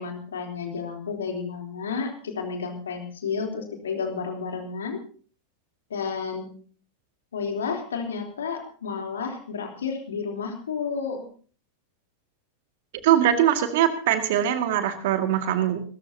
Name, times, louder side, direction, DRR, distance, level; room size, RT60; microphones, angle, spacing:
voice 1, 0.0-5.0 5.9-6.5 7.3-11.2, left 5 dB, 65° left, 3 dB, 3.5 m, -31 dB
voice 2, 13.0-15.8, right 11 dB, 50° right, 7 dB, 2.1 m, -22 dB
27.0 x 14.0 x 2.8 m, 0.43 s
figure-of-eight pair, 90°, 0 cm